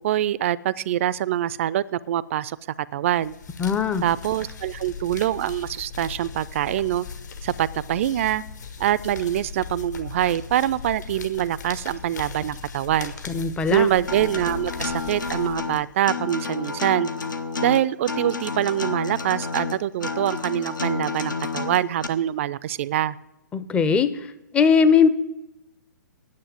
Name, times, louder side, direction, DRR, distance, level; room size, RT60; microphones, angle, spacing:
voice 1, 0.0-2.6 2.9-3.3 4.0-7.1 7.4-8.4 8.8-13.1 13.7-17.1 17.6-23.2, right 12 dB, 40° right, 19 dB, 0.4 m, -24 dB
sound 1, 3.1-16.0, left 5 dB, 65° left, 1.5 m, -38 dB
voice 2, 3.6-4.1 13.3-13.9 23.5-24.1 24.5-25.1, left 6 dB, 10° left, 12 dB, 0.5 m, -19 dB
Acoustic guitar, 14.1-22.1, left 4 dB, 80° left, 0.9 m, -30 dB
9.6 x 7.5 x 8.9 m, 0.93 s
figure-of-eight pair, 125°, 10 cm